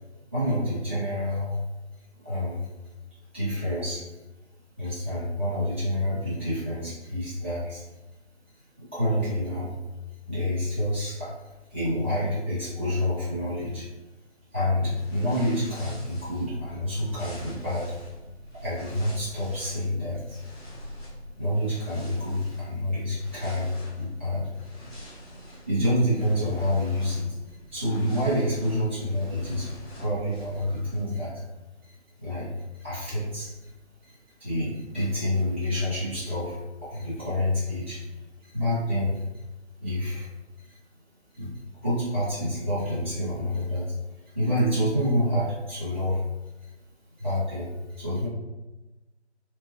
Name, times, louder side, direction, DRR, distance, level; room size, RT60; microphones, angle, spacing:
voice 1, 0.3-1.6 2.2-2.7 3.3-4.0 4.8-7.8 8.8-9.8 10.3-11.3 11.7-13.9 14.5-17.9 18.5-20.4 21.4-24.7 25.7-31.4 32.2-32.5 32.8-33.7 34.0-38.0 38.5-39.2 39.8-40.3 40.7-40.8 41.3-41.5 41.8-43.9 44.3-46.2 47.2-48.3, left 1 dB, 10° right, -14 dB, 0.4 m, -28 dB
sound 1, 14.9-31.0, equal, 10° left, 1.3 m, -45 dB
3.4 x 2.9 x 3.0 m, 1.1 s
figure-of-eight pair, 145°, 34 cm